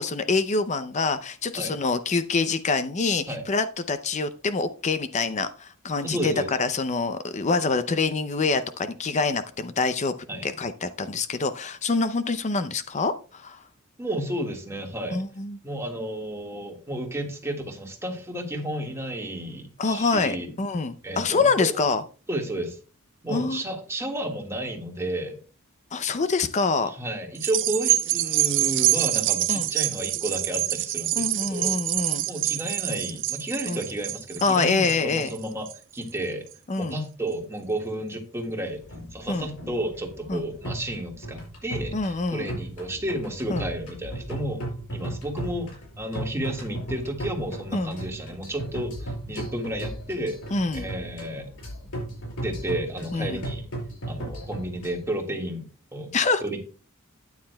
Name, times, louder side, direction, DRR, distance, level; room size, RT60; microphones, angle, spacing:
voice 1, 0.0-6.3 6.6-10.1 10.4-13.6 15.1-15.6 19.8-22.0 23.3-23.6 25.9-26.9 29.5-29.7 31.2-32.2 33.7-33.8 34.4-35.3 36.7-37.0 39.3-39.5 40.3-40.4 41.9-42.5 43.5-43.7 47.7-47.9 50.5-50.9 53.1-53.4 56.1-56.4, left 4 dB, 30° left, 11 dB, 0.5 m, -26 dB
voice 2, 6.0-6.5 10.3-10.5 14.0-15.2 15.6-20.5 21.0-21.8 22.3-22.8 23.2-25.4 26.8-31.8 32.3-35.7 35.9-36.5 36.8-38.8 39.1-44.6 44.9-50.4 50.7-51.5 52.4-53.6 54.1-56.1 56.4-56.6, right 1 dB, 10° right, 2 dB, 1.7 m, -32 dB
sound 1, 27.4-36.0 36.5-36.6, right 15 dB, 55° right, 0.4 m, -26 dB
sound 2, 38.7-55.0, right 1 dB, 80° left, 5.3 m, -36 dB
13.0 x 9.6 x 2.2 m, 0.36 s
head